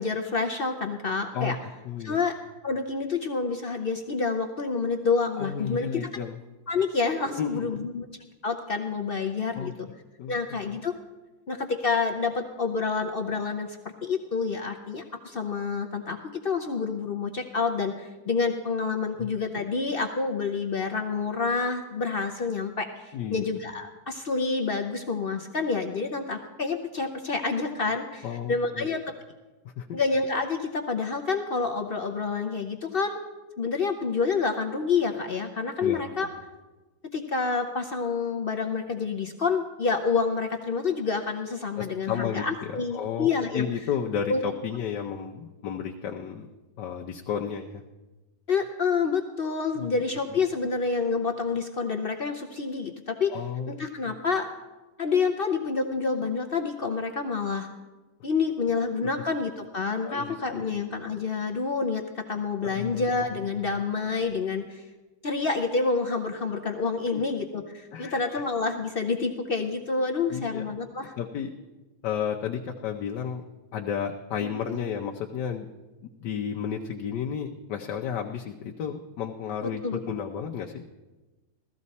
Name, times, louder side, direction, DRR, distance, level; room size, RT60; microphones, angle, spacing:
voice 1, 0.0-1.6 2.0-2.3 2.6-6.1 6.7-8.0 8.4-9.9 10.3-10.9 11.5-16.2 16.4-29.0 29.9-33.2 33.6-36.3 37.1-43.7 44.3-44.4 48.5-53.4 53.7-54.5 55.0-57.7 58.2-64.8 65.2-71.1 74.4-74.8 79.6-80.0, left 4 dB, 55° left, 4 dB, 0.6 m, -28 dB
voice 2, 1.8-2.2 5.4-6.4 7.3-7.7 9.5-9.7 10.2-10.4 19.2-19.3 23.1-23.4 28.2-28.9 29.8-30.0 35.8-36.0 41.8-46.5 46.8-47.8 49.7-50.0 50.3-50.4 53.3-53.7 60.0-60.7 62.7-63.4 67.1-67.2 67.9-68.4 70.3-70.6 71.2-71.5 72.0-73.4 73.7-75.7 76.2-80.8, left 7 dB, 80° left, 2 dB, 1.3 m, -32 dB
15.5 x 14.0 x 4.1 m, 1.1 s
omnidirectional pair, 1.8 m